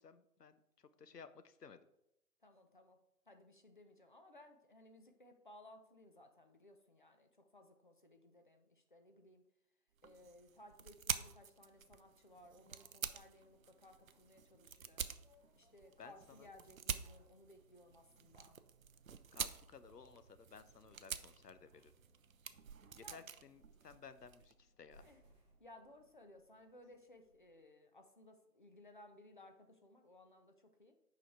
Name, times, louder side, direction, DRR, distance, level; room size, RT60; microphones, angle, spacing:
voice 1, 0.0-1.9 16.0-16.5 19.3-21.9 22.9-25.1, left 6 dB, 75° left, 12 dB, 0.8 m, -57 dB
voice 2, 2.4-3.0 3.3-9.5 10.0-15.1 15.6-18.6 23.0-23.3 25.0-25.2 25.6-31.0, left 1 dB, 30° left, 6 dB, 0.6 m, -61 dB
sound 1, 10.0-24.5, right 7 dB, 60° right, 0.5 m, -48 dB
sound 2, 11.1-27.6, equal, 5° right, 1.2 m, -73 dB
6.6 x 5.0 x 4.5 m, 0.81 s
figure-of-eight pair, 145°, 48 cm